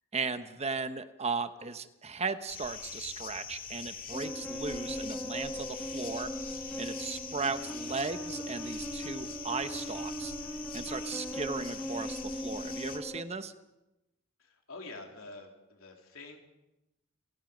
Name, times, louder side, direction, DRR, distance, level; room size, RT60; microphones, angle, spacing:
voice 1, 0.1-6.3 6.8-10.3 10.7-13.5, right 4 dB, 30° right, 10 dB, 1.0 m, -36 dB
sound 1, 2.5-13.0, left 6 dB, 45° left, 2.1 m, -43 dB
sound 2, 4.1-13.2, equal, 5° left, 1.6 m, -39 dB
voice 2, 14.4-16.4, left 3 dB, 75° left, 2 dB, 3.7 m, -47 dB
29.5 x 17.0 x 5.2 m, 0.95 s
head